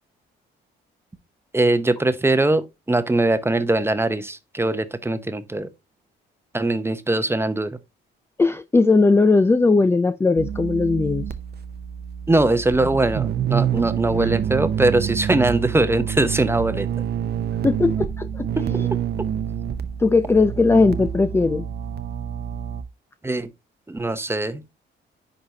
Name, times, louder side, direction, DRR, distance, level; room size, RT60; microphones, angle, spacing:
voice 1, 1.5-5.7 6.5-7.8 12.3-16.9 18.6-18.7 23.2-23.5 23.9-24.6, right 2 dB, 10° right, 0.8 m, -21 dB
voice 2, 8.4-11.2 14.2-14.3 17.6-18.9 20.0-21.7, left 3 dB, 10° left, 0.4 m, -18 dB
sound 1, 10.4-22.8, right 9 dB, 55° right, 0.7 m, -27 dB
10.5 x 3.9 x 2.8 m
cardioid pair, 90°, 20 cm